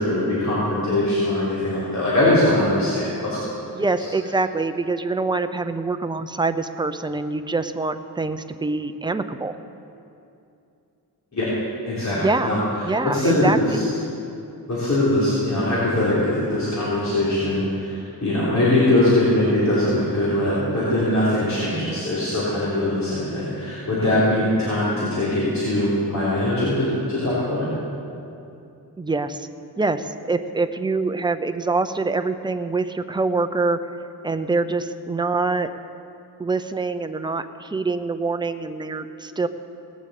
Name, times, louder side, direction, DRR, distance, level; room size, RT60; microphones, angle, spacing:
voice 1, 0.0-3.5 11.3-11.5 11.8-12.6 13.0-13.8 14.7-27.7, left 1 dB, 45° left, -10 dB, 3.7 m, -21 dB
voice 2, 3.7-9.6 12.2-12.5 12.8-13.8 21.7-22.0 29.0-29.5 29.8-33.8 34.2-35.7 36.4-39.5, right 3 dB, 10° right, 9 dB, 0.6 m, -25 dB
18.5 x 7.3 x 8.3 m, 2.7 s
wide cardioid pair, 120°, 39 cm